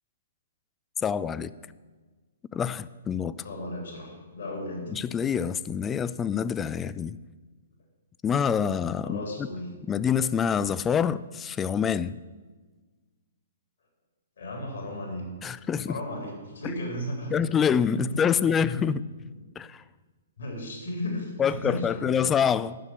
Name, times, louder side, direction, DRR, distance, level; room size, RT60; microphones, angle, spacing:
voice 1, 1.0-1.5 2.5-3.4 4.9-7.2 8.2-9.5 9.9-12.2 15.4-16.0 17.3-19.0 19.6-19.8 21.4-22.8, left 7 dB, 15° left, 0.4 m, -26 dB
voice 2, 3.4-4.9 9.0-9.7 14.4-15.3 15.9-17.6 17.9-18.2 18.7-18.9 20.4-22.2, left 1 dB, 65° left, 3.6 m, -35 dB
11.0 x 6.7 x 9.2 m
figure-of-eight pair, 125°, 0 cm